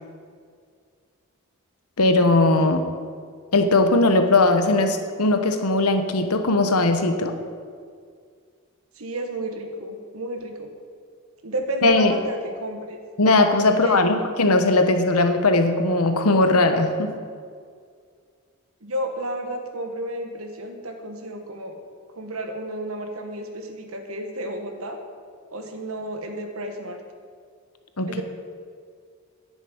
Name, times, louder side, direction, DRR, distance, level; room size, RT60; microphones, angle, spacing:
voice 1, 2.0-2.8 3.5-7.4 11.8-12.1 13.2-17.1 28.0-28.2, left 2 dB, 85° left, 7 dB, 1.2 m, -19 dB
voice 2, 8.9-10.7 11.4-13.0 13.7-14.1 18.8-21.8 22.1-25.0 25.5-27.0 28.1-28.2, right 1 dB, 70° right, 4 dB, 1.6 m, -31 dB
10.0 x 7.5 x 9.2 m, 2.1 s
head